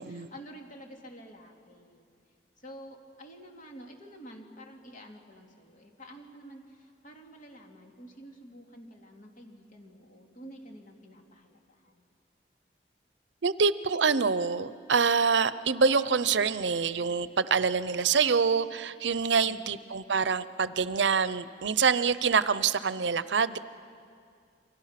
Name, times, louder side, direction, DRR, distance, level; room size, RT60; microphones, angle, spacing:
voice 1, 0.0-2.1 2.6-12.0 19.4-19.7, equal, 45° left, 2 dB, 2.8 m, -49 dB
voice 2, 13.4-23.6, right 5 dB, 80° right, 15 dB, 0.7 m, -26 dB
28.5 x 24.5 x 5.9 m, 2.3 s
head